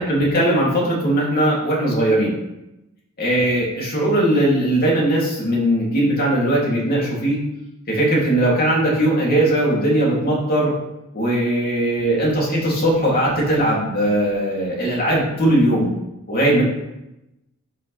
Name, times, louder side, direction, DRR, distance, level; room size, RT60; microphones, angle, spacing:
voice 1, 0.0-2.3 3.2-7.4 7.9-10.7 11.1-15.9 16.3-16.6, right 1 dB, 45° left, -4 dB, 3.0 m, -19 dB
11.5 x 6.6 x 3.4 m, 0.93 s
head